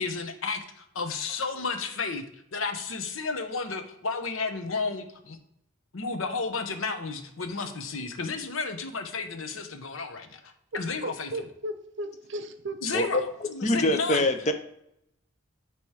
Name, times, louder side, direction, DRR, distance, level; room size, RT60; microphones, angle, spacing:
voice 1, 0.0-2.2 2.5-5.4 5.9-11.5 12.8-14.3, left 4 dB, 90° left, 7 dB, 0.8 m, -32 dB
voice 2, 11.0-13.2, right 1 dB, 65° right, 9 dB, 0.7 m, -36 dB
voice 3, 13.6-14.5, left 1 dB, 35° left, 8 dB, 0.6 m, -24 dB
8.7 x 3.1 x 4.7 m, 0.76 s
head